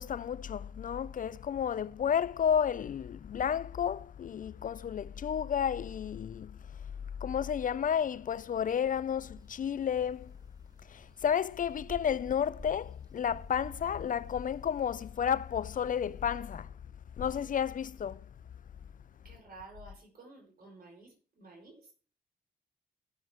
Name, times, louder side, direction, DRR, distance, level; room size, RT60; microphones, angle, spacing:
voice 1, 0.0-6.6 7.2-10.3 10.9-16.7 17.2-18.2, left 8 dB, 50° left, 0.4 m, -32 dB
sound 1, 9.4-16.6, right 2 dB, 20° right, 1.4 m, -53 dB
voice 2, 19.2-21.9, right 3 dB, 55° right, 4.6 m, -52 dB
17.0 x 6.1 x 3.6 m
supercardioid pair, 45°, 18 cm